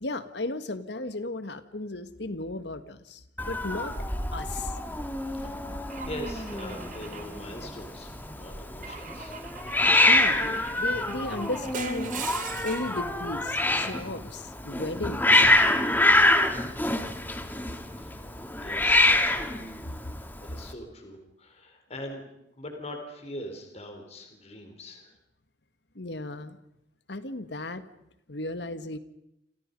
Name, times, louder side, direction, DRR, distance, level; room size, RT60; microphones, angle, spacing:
voice 1, 0.0-4.0 4.3-4.7 9.9-12.1 12.6-15.5 26.0-26.6 27.1-27.8 28.3-29.0, left 2 dB, 65° left, 11 dB, 1.8 m, -35 dB
Hiss, 3.4-20.7, left 1 dB, 10° left, 2.0 m, -26 dB
voice 2, 5.3-9.4 18.0-18.3 18.6-19.6 20.4-22.2 22.6-25.1, left 1 dB, 35° left, 4 dB, 4.2 m, -42 dB
Car / Engine / Glass, 5.9-8.1 8.8-13.0, right 6 dB, 45° right, 3.0 m, -41 dB
29.5 x 27.5 x 5.4 m, 0.81 s
head